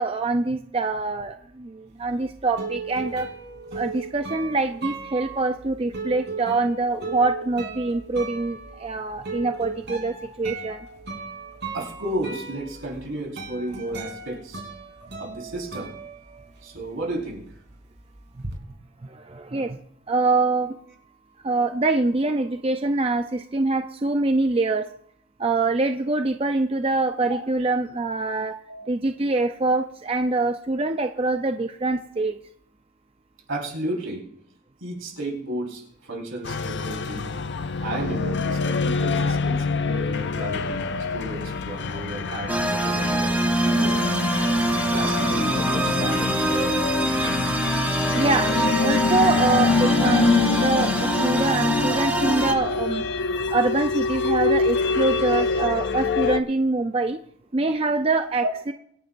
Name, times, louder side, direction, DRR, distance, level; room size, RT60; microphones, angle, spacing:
voice 1, 0.0-3.3 3.7-10.8 19.1-19.8 20.1-20.7 21.4-24.9 25.4-28.5 28.9-32.4 48.1-48.5 48.8-53.0 53.5-57.2 57.5-58.7, right 3 dB, 30° right, 6 dB, 0.5 m, -24 dB
sound 1, 2.0-16.8 17.1-18.5, right 4 dB, 55° right, 3.5 m, -37 dB
voice 2, 11.7-14.6 15.2-16.0 16.6-17.4 27.2-27.3 28.7-28.9 33.5-34.2 34.8-37.3 37.8-44.1 44.7-46.6 47.0-47.4 58.4-58.5, right 1 dB, 80° right, -2 dB, 4.6 m, -33 dB
sound 2, 36.4-56.4, left 4 dB, 60° left, 0.5 m, -25 dB
sound 3, 42.5-52.5, right 1 dB, 10° right, 0.9 m, -24 dB
25.0 x 9.5 x 2.6 m, 0.67 s
head